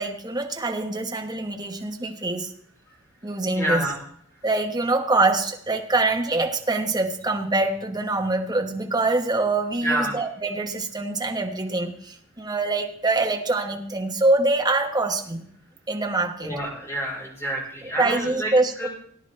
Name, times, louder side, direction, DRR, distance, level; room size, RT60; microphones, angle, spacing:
voice 1, 0.0-2.5 3.2-3.8 4.4-15.5 15.9-16.6 18.0-18.9, right 2 dB, 20° right, 3 dB, 1.2 m, -24 dB
voice 2, 3.6-4.0 9.8-10.2 16.4-18.9, right 1 dB, 10° left, -2 dB, 3.9 m, -28 dB
18.5 x 9.9 x 3.3 m, 0.64 s
head